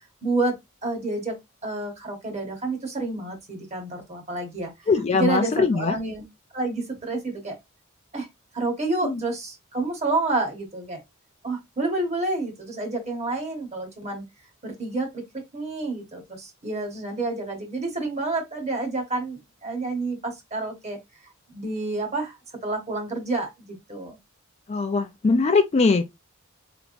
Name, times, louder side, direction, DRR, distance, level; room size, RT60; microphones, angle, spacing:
voice 1, 0.2-0.6 0.8-1.4 1.6-6.2 6.5-7.6 8.1-8.3 8.5-11.0 11.4-14.2 14.6-21.0 21.5-22.4 22.6-24.2, right 2 dB, 30° right, 1.2 m, -29 dB
voice 2, 4.9-6.0 9.0-9.2 24.7-26.0, left 4 dB, 30° left, 0.4 m, -21 dB
3.4 x 2.9 x 2.5 m
head